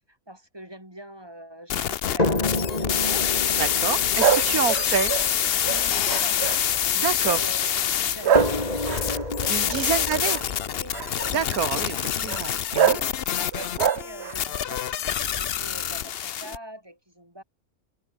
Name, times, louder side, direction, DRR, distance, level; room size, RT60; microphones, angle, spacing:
voice 1, 0.3-4.1 4.5-4.7 5.6-8.8 9.1-10.1 10.7-11.0 11.9-12.3 12.7-17.4, right 1 dB, 15° right, 7.4 m, -44 dB
sound 1, 1.7-16.6, left 9 dB, 50° left, 0.8 m, -26 dB
sound 2, 2.2-7.4 8.3-12.3 13.3-13.4 13.8-13.9, left 2 dB, 25° left, 3.0 m, -30 dB
voice 2, 3.6-5.1 7.0-7.4 9.5-10.4 11.3-13.0, right 8 dB, 85° right, 1.7 m, -27 dB
sound 3, 4.2-6.8 7.2-7.6 8.2-10.5 10.9-11.4 12.3-12.4 12.7-13.1 13.5-14.4, right 9 dB, 55° right, 1.0 m, -25 dB
omnidirectional pair, 1.5 m